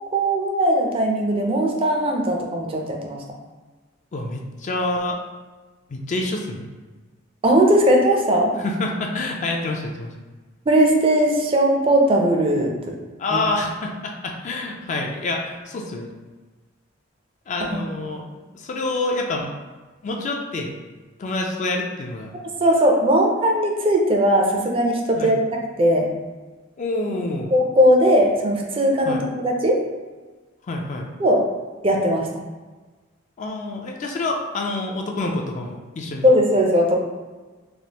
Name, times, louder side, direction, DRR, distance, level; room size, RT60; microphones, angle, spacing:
voice 1, 0.1-3.2 7.4-8.5 10.7-12.7 13.3-13.4 17.7-17.8 18.1-18.2 22.6-26.1 27.5-29.8 31.2-31.4 31.8-32.3 36.2-37.0, equal, 30° right, 1 dB, 0.4 m, -19 dB
voice 2, 4.1-5.2 5.9-6.7 8.6-10.1 13.2-16.1 17.5-18.3 18.5-19.5 20.0-20.7 21.2-22.3 25.1-25.4 26.8-27.5 29.1-29.2 30.7-31.1 33.4-36.3, left 2 dB, 40° left, 1 dB, 0.3 m, -27 dB
3.2 x 2.4 x 2.8 m, 1.3 s
head